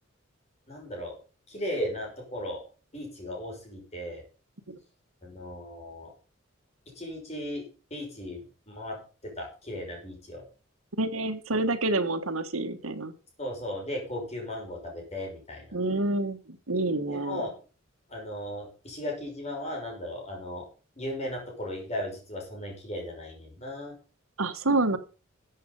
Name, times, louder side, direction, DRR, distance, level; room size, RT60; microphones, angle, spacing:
voice 1, 0.7-1.2 1.5-2.6 2.9-4.2 5.2-6.1 7.0-7.6 7.9-9.0 9.2-10.4 13.4-15.7 17.1-17.5 18.1-20.6 21.0-23.9, left 1 dB, 30° left, 0 dB, 5.8 m, -36 dB
voice 2, 11.0-13.1 15.7-17.4 24.4-25.0, right 2 dB, 90° right, 9 dB, 1.5 m, -28 dB
14.0 x 7.9 x 5.5 m, 0.35 s
head